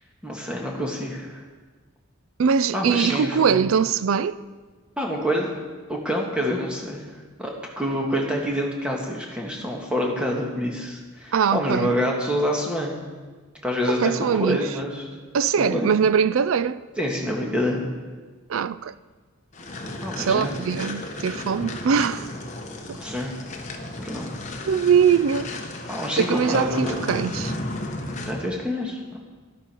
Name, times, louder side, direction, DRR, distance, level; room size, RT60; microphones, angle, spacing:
voice 1, 0.2-1.4 2.7-3.6 5.0-5.5 5.9-7.0 7.4-7.5 7.8-12.9 13.6-15.1 15.6-15.9 17.0-17.8 20.0-20.6 22.9-23.4 23.9-24.3 25.9-27.0 28.2-29.2, equal, 5° right, 1.7 m, -27 dB
voice 2, 2.4-4.4 11.3-11.9 13.9-14.6 15.3-16.8 18.5-18.9 20.2-22.3 22.9-23.0 24.7-25.5 26.2-27.5, right 6 dB, 80° right, 0.4 m, -22 dB
sound 1, 19.5-28.5, left 2 dB, 35° left, 1.0 m, -34 dB
12.0 x 11.5 x 4.5 m
head